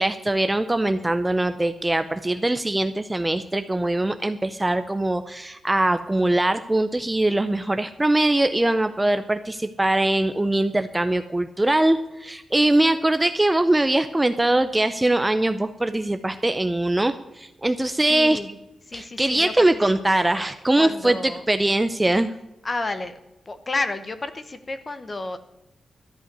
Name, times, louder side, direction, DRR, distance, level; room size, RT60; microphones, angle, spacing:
voice 1, 0.0-18.4 18.9-22.3, right 1 dB, 10° right, 9 dB, 0.4 m, -22 dB
voice 2, 18.1-18.5 18.9-19.5 20.0-20.5 20.8-21.4 22.6-23.1 23.5-25.4, left 2 dB, 25° left, 11 dB, 0.9 m, -31 dB
13.0 x 5.6 x 9.5 m, 0.91 s
wide cardioid pair, 160°, 0 cm